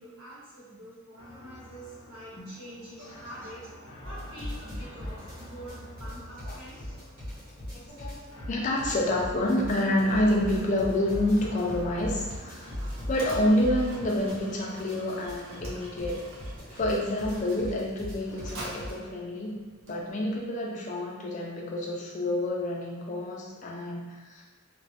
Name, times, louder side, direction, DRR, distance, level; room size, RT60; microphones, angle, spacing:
voice 1, 0.0-3.7 4.0-7.1, equal, 90° right, -9 dB, 1.3 m, -45 dB
sound 1, 1.2-17.1, equal, 85° left, 0.8 m, -50 dB
sound 2, 4.0-18.9, equal, 40° right, 1.4 m, -38 dB
voice 2, 7.7-12.7 13.1-16.3 16.7-19.6 19.9-24.5, left 1 dB, 35° left, -1 dB, 0.4 m, -28 dB
Mechanisms, 10.8-20.5, right 1 dB, 70° right, 0.6 m, -47 dB
2.9 x 2.2 x 2.9 m, 1.3 s
head